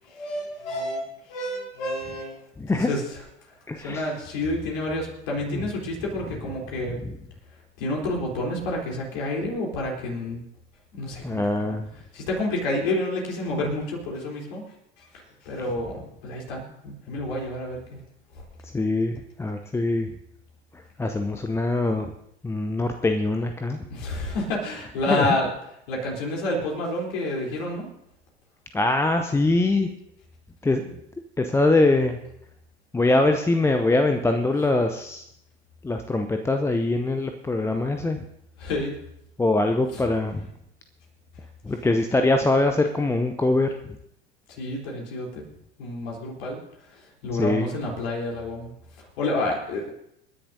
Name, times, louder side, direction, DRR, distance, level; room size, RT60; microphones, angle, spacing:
voice 1, 0.0-2.4 2.7-3.2 3.8-7.0 7.8-10.4 10.9-11.7 12.1-14.7 15.0-18.0 23.9-25.5 25.9-27.9 38.6-38.9 39.9-40.0 44.5-45.4 45.8-46.6 47.2-48.7 49.0-49.9, left 1 dB, 55° left, -1 dB, 3.7 m, -29 dB
voice 2, 2.6-2.9 3.7-4.1 5.5-5.6 7.0-7.2 11.2-11.9 18.6-20.1 21.0-22.1 22.4-23.9 25.1-25.3 28.7-29.9 30.6-30.8 31.4-32.2 32.9-35.2 35.8-38.2 39.4-40.4 41.6-44.0 47.4-47.7, left 2 dB, 10° left, 6 dB, 0.6 m, -23 dB
28.5 x 10.0 x 2.7 m, 0.77 s
figure-of-eight pair, 80°, 34 cm